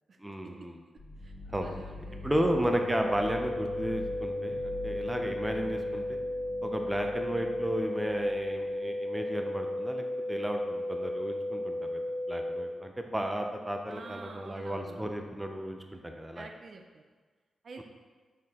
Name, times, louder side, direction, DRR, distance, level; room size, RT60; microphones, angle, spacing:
voice 1, 0.2-0.8 1.5-1.7 2.2-6.2 6.6-16.5 17.8-17.9, equal, 10° right, 3 dB, 0.6 m, -33 dB
sound 1, 1.0-8.7, left 3 dB, 55° left, 1.6 m, -45 dB
voice 2, 1.2-2.3 13.9-15.2 16.3-17.0 17.6-17.8, right 3 dB, 55° right, 4 dB, 0.5 m, -48 dB
sound 2, 2.6-12.6, left 1 dB, 35° left, 1.0 m, -34 dB
6.5 x 4.2 x 3.7 m, 1.4 s
cardioid pair, 85°, 0 cm